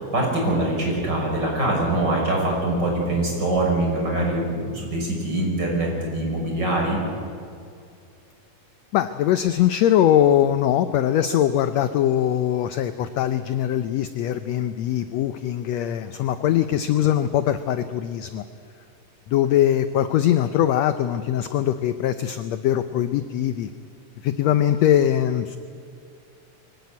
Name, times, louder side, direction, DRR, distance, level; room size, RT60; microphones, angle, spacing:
voice 1, 0.0-7.0, right 1 dB, 30° right, -1 dB, 6.5 m, -23 dB
voice 2, 8.9-18.5 19.3-23.7 24.2-25.6, left 11 dB, 75° left, 11 dB, 1.6 m, -21 dB
24.0 x 16.5 x 9.6 m, 2.4 s
omnidirectional pair, 3.7 m